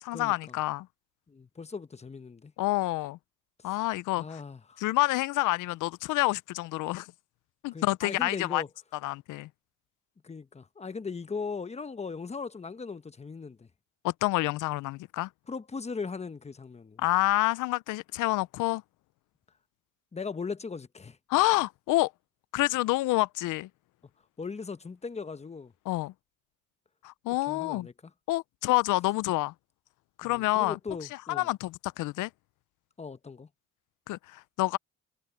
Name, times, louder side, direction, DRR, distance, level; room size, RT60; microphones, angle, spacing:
voice 1, 0.0-0.9 2.6-3.2 3.6-4.4 4.8-7.1 7.6-8.6 9.0-9.5 14.0-15.3 17.0-18.8 21.3-22.1 22.5-23.7 25.9-26.1 27.0-27.9 28.3-29.5 30.2-30.8 31.3-32.3 34.1-34.8, left 18 dB, 85° left, 0.5 m, -28 dB
voice 2, 1.3-2.5 4.2-4.8 7.7-8.7 10.2-13.7 15.5-17.0 20.1-21.2 24.4-25.7 27.3-28.1 30.2-31.5 33.0-33.5, left 5 dB, 20° left, 0.9 m, -38 dB
cardioid pair, 90°, 30 cm